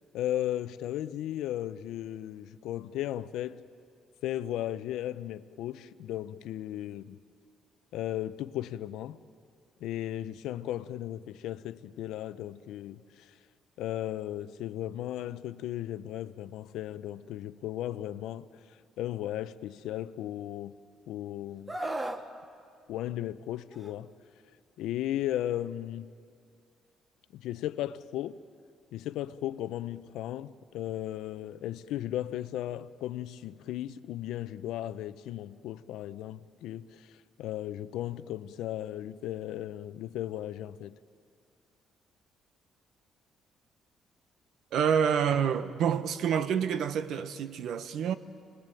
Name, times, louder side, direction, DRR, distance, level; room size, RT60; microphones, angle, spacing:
voice 1, 0.1-3.6 4.2-7.2 7.9-9.2 9.8-13.3 13.8-18.5 19.0-20.8 21.1-21.8 22.9-24.1 24.8-26.1 27.3-28.4 28.9-37.1 37.4-41.0, left 13 dB, 85° left, 0.7 m, -36 dB
Screaming, 21.7-22.2 23.7-23.9, right 1 dB, 10° right, 1.0 m, -34 dB
voice 2, 44.7-48.1, right 7 dB, 60° right, 1.0 m, -28 dB
28.5 x 20.0 x 9.1 m
cardioid pair, 165°, 0 cm